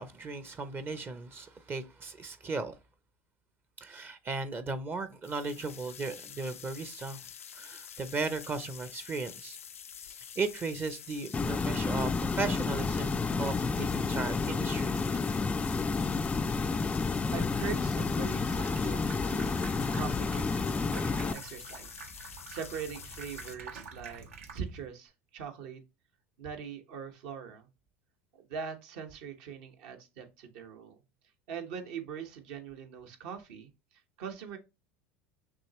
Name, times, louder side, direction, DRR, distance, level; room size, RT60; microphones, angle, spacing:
voice 1, 0.0-2.8 3.8-7.2 7.6-9.6 10.4-15.2, right 3 dB, 30° right, 0.6 m, -36 dB
sound 1, 5.2-23.5, left 8 dB, 90° left, 0.4 m, -48 dB
sound 2, 11.3-21.3, left 4 dB, 15° left, 0.3 m, -30 dB
voice 2, 17.0-19.6 19.9-24.3 24.5-25.8 26.4-27.7 28.3-31.0 31.5-34.6, right 7 dB, 65° right, 1.1 m, -42 dB
Water tap faucet / Sink (filling or washing), 18.4-24.9, right 5 dB, 80° right, 0.8 m, -47 dB
6.1 x 2.9 x 3.0 m
hypercardioid pair, 80°, 7 cm